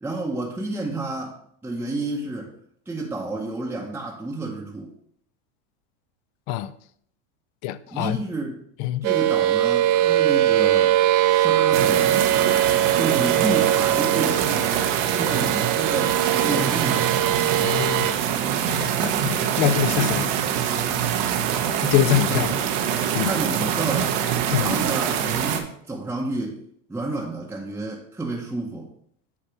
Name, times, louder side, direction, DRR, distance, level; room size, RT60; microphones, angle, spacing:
voice 1, 0.0-2.5 2.9-4.9 7.9-8.6 9.0-11.0 11.3-12.2 12.9-14.7 15.1-17.1 22.3-22.5 23.2-24.2 24.6-26.6 26.9-28.9, right 2 dB, 5° right, 0.8 m, -30 dB
voice 2, 7.6-8.2 8.8-9.1 17.6-18.2 18.8-20.3 21.8-22.5 23.1-23.4 24.5-24.8, left 12 dB, 55° left, 0.5 m, -24 dB
sound 1, 9.0-18.1, right 13 dB, 50° right, 0.6 m, -21 dB
sound 2, 11.7-25.6, right 8 dB, 75° right, 1.0 m, -24 dB
8.3 x 2.9 x 5.8 m
supercardioid pair, 125°, 39 cm